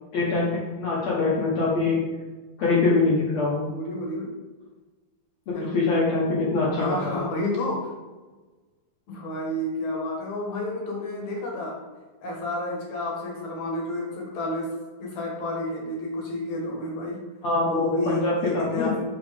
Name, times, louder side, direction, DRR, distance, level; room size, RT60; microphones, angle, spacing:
voice 1, 0.1-2.0 2.6-3.7 5.5-7.2 17.4-17.9 18.2-18.9, left 3 dB, 80° left, -5 dB, 1.5 m, -24 dB
voice 2, 3.7-4.3 5.5-5.7 6.7-7.9 9.1-11.8 12.2-14.7 15.0-17.2 17.6-19.0, left 1 dB, 60° left, -1 dB, 2.0 m, -30 dB
7.3 x 5.0 x 3.4 m, 1.2 s
omnidirectional pair, 4.7 m